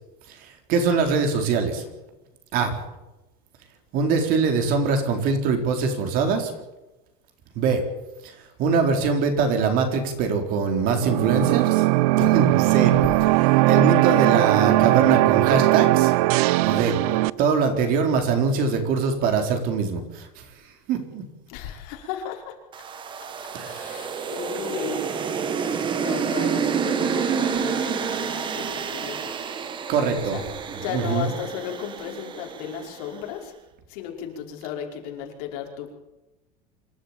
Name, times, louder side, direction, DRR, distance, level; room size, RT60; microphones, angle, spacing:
voice 1, 0.3-1.8 2.5-2.7 3.9-6.5 7.6-7.8 8.2-11.9 12.2-12.9 13.7-16.1 16.6-17.0 17.4-20.4 20.9-21.2 23.5-24.0 29.9-30.4 30.9-31.3, right 5 dB, 45° right, 5 dB, 4.2 m, -23 dB
sound 1, 10.9-17.3, right 20 dB, 70° right, 0.7 m, -19 dB
voice 2, 21.5-22.5 23.6-25.0 25.9-29.3 30.3-30.4 30.8-33.5 33.9-36.0, left 8 dB, 65° left, 1 dB, 5.4 m, -34 dB
sound 2, 22.7-33.1, right 7 dB, 25° right, 1.7 m, -29 dB
26.5 x 12.5 x 9.0 m, 1.0 s
supercardioid pair, 160°, 20 cm